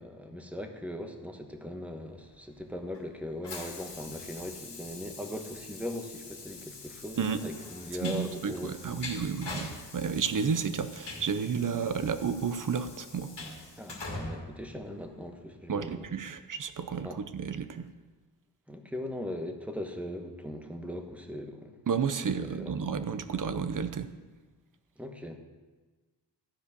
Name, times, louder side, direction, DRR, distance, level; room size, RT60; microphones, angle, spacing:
voice 1, 0.0-8.7 13.8-16.1 17.0-17.2 18.7-21.7 22.6-22.7 25.0-25.4, left 1 dB, 5° right, 4 dB, 1.2 m, -39 dB
Train, 2.3-15.5, left 3 dB, 75° left, 2.2 m, -44 dB
voice 2, 8.0-13.3 15.7-17.9 21.9-24.1, right 6 dB, 50° right, 10 dB, 0.7 m, -31 dB
14.5 x 5.0 x 6.7 m, 1.3 s
wide cardioid pair, 80°, 42 cm